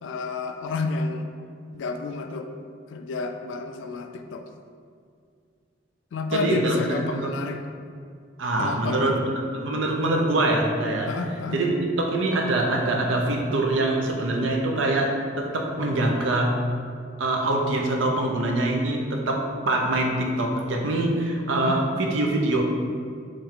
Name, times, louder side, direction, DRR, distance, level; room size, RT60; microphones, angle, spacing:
voice 1, 0.0-1.3 1.7-2.5 2.9-4.5 6.1-7.6 8.6-9.3 11.1-11.6 21.5-21.8, left 3 dB, 70° left, 6 dB, 0.3 m, -30 dB
voice 2, 6.3-7.3 8.4-11.1 11.5-16.6 17.2-22.6, right 2 dB, 80° right, 1 dB, 0.6 m, -24 dB
4.6 x 3.1 x 3.6 m, 2.2 s
head